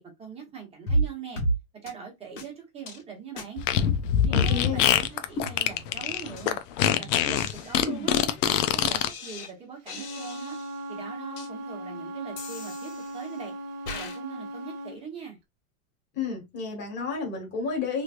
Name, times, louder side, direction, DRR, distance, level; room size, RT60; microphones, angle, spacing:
voice 1, 0.0-1.4 1.8-3.6 4.2-6.6 7.0-10.6 10.9-13.5 13.9-15.4, right 6 dB, 15° right, 1.0 m, -41 dB
sound 1, 0.9-1.1 1.4-1.6 1.9-2.0 2.4-2.5 2.9-3.0 3.4-3.5 3.9-4.5 4.9-5.0 5.4-6.0 6.4-6.5 6.9-9.5 9.9-10.8 11.4-11.5 12.4-13.3 13.9-14.2, right 1 dB, 80° left, 1.6 m, -33 dB
Fart, 3.6-9.1, left 10 dB, 55° left, 0.5 m, -23 dB
voice 2, 4.3-4.9 16.1-18.0, left 5 dB, 25° left, 1.4 m, -31 dB
Wind instrument woodwind instrument, 9.9-15.0, right 1 dB, 30° right, 0.4 m, -38 dB
3.2 x 3.0 x 2.5 m
supercardioid pair, 155°, 45 cm